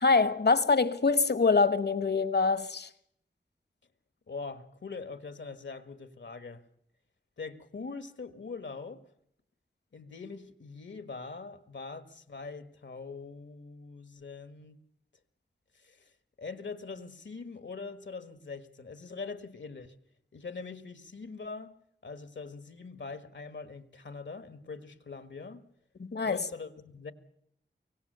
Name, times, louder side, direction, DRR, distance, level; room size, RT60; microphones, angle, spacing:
voice 1, 0.0-2.9 26.0-26.5, left 4 dB, 65° left, 1.2 m, -25 dB
voice 2, 4.3-6.6 7.4-9.1 9.9-14.8 15.7-19.9 20.3-21.8 22.0-25.6 26.2-27.1, left 4 dB, 80° left, 1.7 m, -43 dB
24.0 x 17.5 x 6.8 m
cardioid pair, 45°, 19 cm